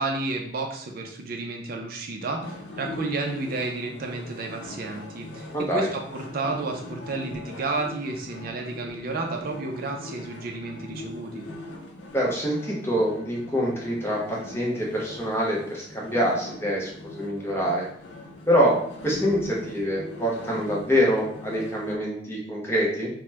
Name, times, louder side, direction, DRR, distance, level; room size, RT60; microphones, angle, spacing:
voice 1, 0.0-11.5, right 3 dB, 50° right, 2 dB, 0.4 m, -31 dB
sound 1, 2.4-22.0, left 2 dB, 80° left, 0.6 m, -41 dB
voice 2, 5.5-5.9 12.1-17.9 18.5-23.1, equal, 15° left, -3 dB, 0.6 m, -25 dB
2.8 x 2.1 x 3.3 m, 0.64 s
head